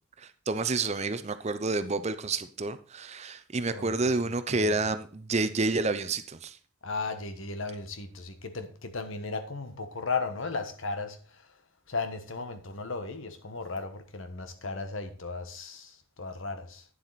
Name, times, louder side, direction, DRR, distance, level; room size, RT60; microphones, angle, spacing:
voice 1, 0.2-6.6, right 3 dB, 30° right, 0.6 m, -29 dB
voice 2, 6.8-11.5 11.9-16.8, left 4 dB, 70° left, 1.3 m, -35 dB
9.4 x 7.6 x 4.1 m
head